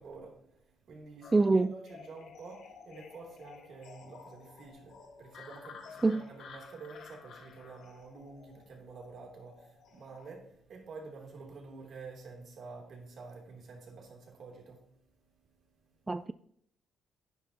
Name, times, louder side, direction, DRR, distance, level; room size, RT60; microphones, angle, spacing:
voice 1, 0.0-16.1, right 4 dB, 60° right, 3.0 m, -49 dB
sound 1, 1.2-10.3, left 5 dB, 75° left, 1.6 m, -53 dB
voice 2, 1.3-1.7 6.0-6.2 16.1-16.3, right 3 dB, 20° right, 0.3 m, -25 dB
11.0 x 9.7 x 2.9 m
cardioid pair, 90°, 0 cm